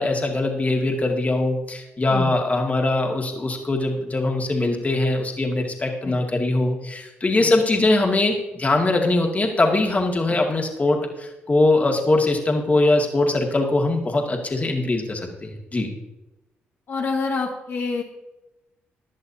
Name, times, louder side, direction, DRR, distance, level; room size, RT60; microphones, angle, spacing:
voice 1, 0.0-15.9, left 2 dB, 30° left, 1 dB, 2.1 m, -22 dB
voice 2, 16.9-18.0, left 4 dB, 60° left, -1 dB, 1.7 m, -27 dB
16.0 x 10.5 x 2.8 m, 0.99 s
supercardioid pair, 55°, 5 cm